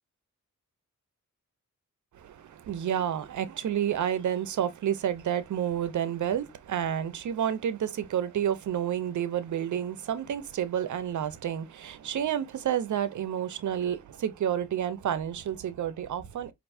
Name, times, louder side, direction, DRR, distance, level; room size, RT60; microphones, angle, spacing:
voice 1, 2.1-16.5, right 9 dB, 70° right, 0.7 m, -30 dB
4.6 x 2.6 x 2.5 m
cardioid pair, 60°, 31 cm